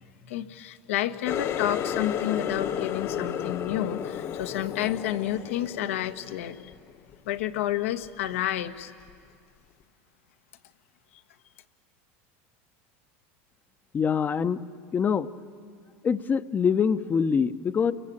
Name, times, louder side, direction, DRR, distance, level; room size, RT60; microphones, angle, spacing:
voice 1, 0.3-6.7 7.3-8.9, left 12 dB, 85° left, 8 dB, 1.4 m, -30 dB
Water tap faucet, 1.3-6.7 7.1-7.6 8.1-8.3 9.1-9.2, left 9 dB, 45° left, 1.1 m, -32 dB
voice 2, 13.9-14.6 14.9-15.3 16.0-17.9, left 6 dB, 25° left, 12 dB, 0.8 m, -24 dB
29.5 x 22.5 x 8.7 m, 2.2 s
supercardioid pair, 115°, 7 cm